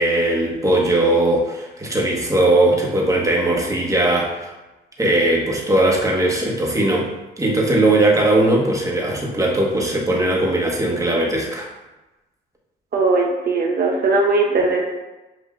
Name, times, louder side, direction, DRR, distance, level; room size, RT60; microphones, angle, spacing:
voice 1, 0.0-4.4 5.0-7.1 7.4-11.7, right 1 dB, 15° right, -3 dB, 1.2 m, -19 dB
voice 2, 12.9-14.9, right 3 dB, 50° right, 0 dB, 1.0 m, -19 dB
7.6 x 2.6 x 2.4 m, 1.1 s
cardioid pair, 90°, 20 cm